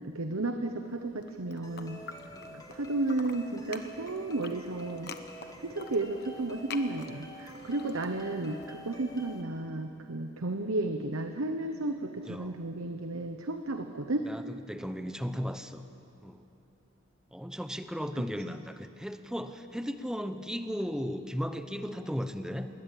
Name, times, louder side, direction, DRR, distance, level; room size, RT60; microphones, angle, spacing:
voice 1, 0.1-2.0 2.7-5.1 5.6-14.2, right 2 dB, 80° right, 6 dB, 1.0 m, -33 dB
sound 1, 1.1-2.8 3.0-8.7, left 5 dB, 50° left, 1.1 m, -46 dB
sound 2, 1.6-9.4, equal, 15° left, 1.5 m, -48 dB
voice 2, 12.3-12.6 14.2-15.8 16.2-16.4 17.3-22.7, equal, 5° right, 9 dB, 0.8 m, -36 dB
20.5 x 20.0 x 8.6 m, 2.8 s
head